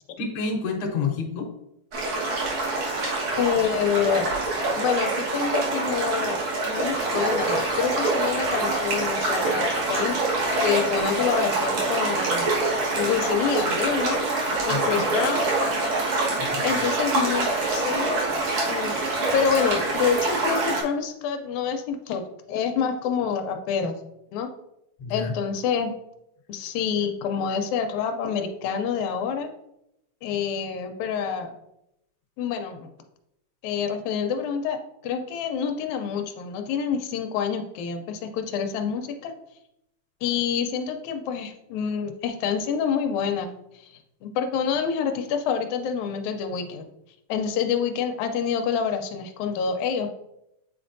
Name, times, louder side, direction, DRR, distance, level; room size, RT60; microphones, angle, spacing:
voice 1, 0.2-1.5 14.7-15.1 16.4-16.6 25.0-25.3, left 4 dB, 60° left, 1 dB, 1.5 m, -29 dB
sound 1, 1.9-20.8, right 2 dB, 60° right, 2.6 m, -25 dB
voice 2, 3.4-4.3 4.8-12.5 12.9-14.2 14.7-15.7 16.6-18.2 18.7-22.2 22.5-23.9 24.3-24.5 25.1-25.9 26.5-29.5 30.2-31.6 32.4-32.9 33.6-39.3 40.2-43.5 43.7-46.9 47.3-50.1, left 7 dB, 80° left, 6 dB, 2.0 m, -27 dB
8.5 x 4.2 x 2.6 m, 0.83 s
omnidirectional pair, 3.4 m